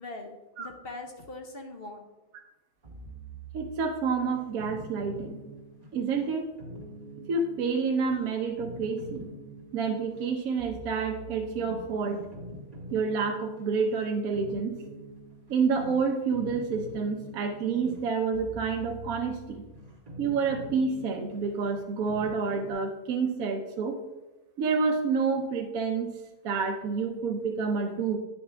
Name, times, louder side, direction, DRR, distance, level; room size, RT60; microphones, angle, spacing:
voice 1, 0.0-2.1, left 2 dB, 45° left, 3 dB, 0.9 m, -42 dB
sound 1, 2.8-22.7, right 1 dB, 25° right, 1.6 m, -45 dB
voice 2, 3.5-5.4 5.9-6.5 7.3-9.3 9.7-12.2 12.9-14.7 15.5-19.6 20.2-24.0 24.6-26.1 26.4-28.2, right 5 dB, 70° right, 2 dB, 1.1 m, -28 dB
9.4 x 5.9 x 3.4 m, 1.1 s
omnidirectional pair, 1.6 m